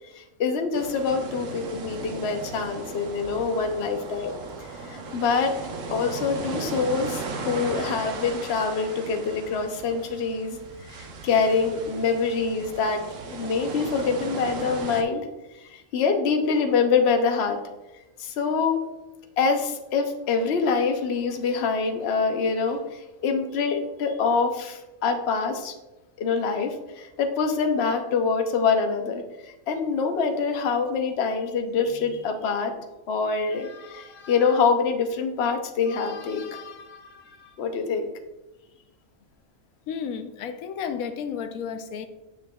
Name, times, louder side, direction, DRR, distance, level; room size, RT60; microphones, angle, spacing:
voice 1, 0.1-4.4 4.8-5.5 5.9-13.0 13.3-15.3 15.6-17.6 18.2-18.8 19.4-25.7 26.2-32.7 33.1-38.1, left 5 dB, 55° left, 0.9 m, -25 dB
sound 1, 0.7-15.0, right 3 dB, 70° right, 1.2 m, -36 dB
voice 2, 39.9-42.1, left 7 dB, 85° left, 1.1 m, -32 dB
9.8 x 6.4 x 2.3 m
omnidirectional pair, 1.4 m